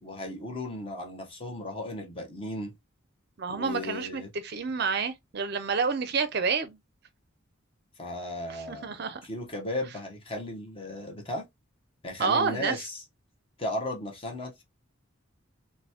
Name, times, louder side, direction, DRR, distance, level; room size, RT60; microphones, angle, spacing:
voice 1, 0.0-2.7 3.5-4.3 8.0-8.9 9.2-11.4 12.0-13.0 13.6-14.6, left 1 dB, 25° left, 1.0 m, -35 dB
voice 2, 3.4-6.8 8.7-9.2 12.2-12.8, right 5 dB, 50° right, 0.5 m, -29 dB
4.0 x 2.2 x 2.8 m
head